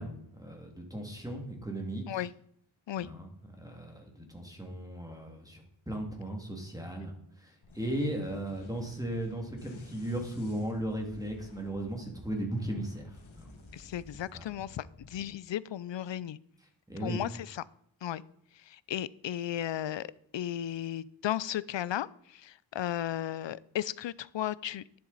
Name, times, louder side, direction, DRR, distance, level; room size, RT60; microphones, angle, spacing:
voice 1, 0.0-2.2 3.0-3.3 3.6-7.1 7.4-13.5 14.3-14.5 16.9-17.2, right 1 dB, 10° right, 2 dB, 2.2 m, -36 dB
sound 1, 7.6-15.3, left 2 dB, 90° left, 1.9 m, -53 dB
voice 2, 13.7-16.4 17.0-17.6 18.0-18.2 18.5-25.0, left 11 dB, 70° left, 20 dB, 0.5 m, -35 dB
11.5 x 10.5 x 4.0 m, 0.68 s
wide cardioid pair, 90°, 46 cm